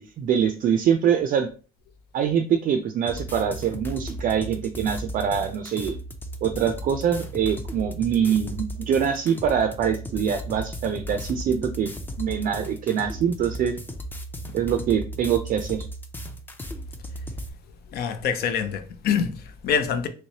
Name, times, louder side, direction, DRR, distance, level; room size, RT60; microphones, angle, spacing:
voice 1, 0.0-1.5 2.1-6.0 6.4-13.8 14.5-15.9, right 8 dB, 50° right, 0.4 m, -24 dB
sound 1, 3.1-17.5, equal, 10° left, 0.4 m, -36 dB
voice 2, 17.9-20.1, left 7 dB, 70° left, 0.6 m, -25 dB
3.1 x 3.1 x 2.8 m
cardioid pair, 110°, 17 cm